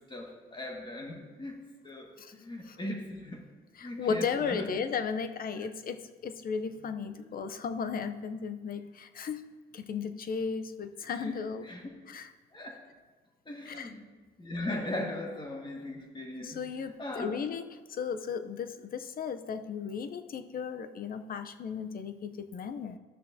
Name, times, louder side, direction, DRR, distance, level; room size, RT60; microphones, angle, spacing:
voice 1, 0.1-3.4 3.8-4.7 11.0-11.4 11.6-11.9 12.5-12.8 13.4-14.1 14.4-17.3, left 1 dB, 25° left, 1 dB, 1.6 m, -39 dB
voice 2, 3.8-11.7 12.1-12.3 13.7-13.9 16.4-23.0, left 6 dB, 45° left, 10 dB, 0.6 m, -35 dB
12.5 x 6.4 x 2.7 m, 1.3 s
cardioid pair, 90°, 20 cm